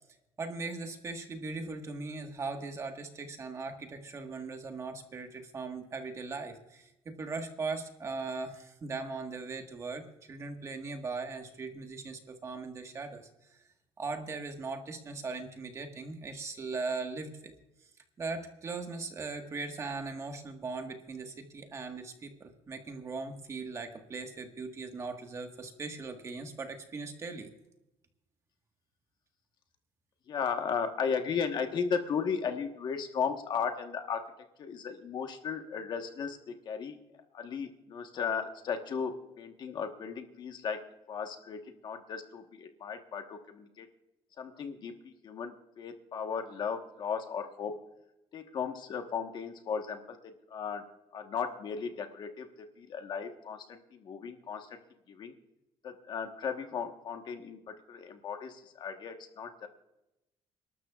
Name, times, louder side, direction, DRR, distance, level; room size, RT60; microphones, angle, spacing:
voice 1, 0.4-13.6 14.0-17.5 18.2-27.5, right 4 dB, 30° right, 5 dB, 1.5 m, -39 dB
voice 2, 30.3-34.2 34.6-37.0 37.3-40.8 41.1-43.9 44.4-47.7 48.3-50.8 51.1-52.5 52.8-54.8 55.1-55.3 55.8-59.7, left 6 dB, 45° left, 5 dB, 1.3 m, -36 dB
29.0 x 12.5 x 2.4 m, 0.91 s
cardioid pair, 155°, 10 cm